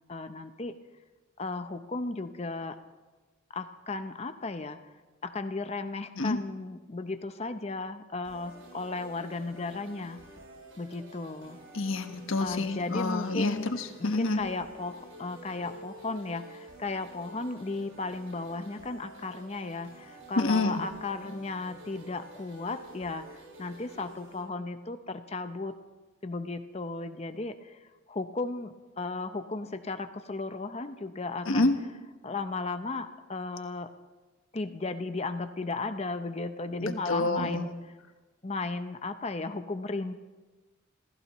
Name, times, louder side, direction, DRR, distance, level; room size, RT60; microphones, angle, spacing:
voice 1, 0.1-0.7 1.4-2.8 3.5-4.8 5.2-10.2 10.8-11.6 12.4-13.7 14.0-25.8 26.2-31.7 32.2-33.9 34.5-37.8 38.4-40.1, left 3 dB, 30° left, 9 dB, 0.6 m, -35 dB
sound 1, 8.2-24.4, right 1 dB, 80° right, 6.7 m, -50 dB
voice 2, 11.7-14.4 20.4-20.8 31.5-31.8 36.8-37.7, left 2 dB, 75° left, 6 dB, 1.2 m, -28 dB
27.5 x 16.0 x 3.1 m, 1.3 s
head